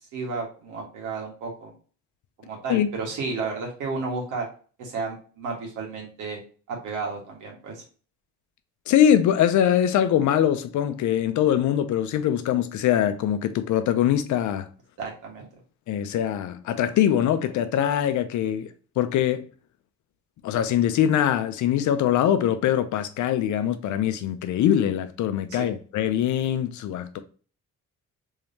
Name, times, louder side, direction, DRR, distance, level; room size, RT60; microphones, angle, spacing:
voice 1, 0.1-1.7 2.4-4.5 4.8-6.4 6.7-7.8 15.0-15.5 25.5-25.8, right 4 dB, 80° right, 1.8 m, -32 dB
voice 2, 8.9-14.7 15.9-19.5 20.4-27.2, left 10 dB, 75° left, 0.6 m, -23 dB
3.6 x 3.5 x 2.7 m
cardioid pair, 90°, 30 cm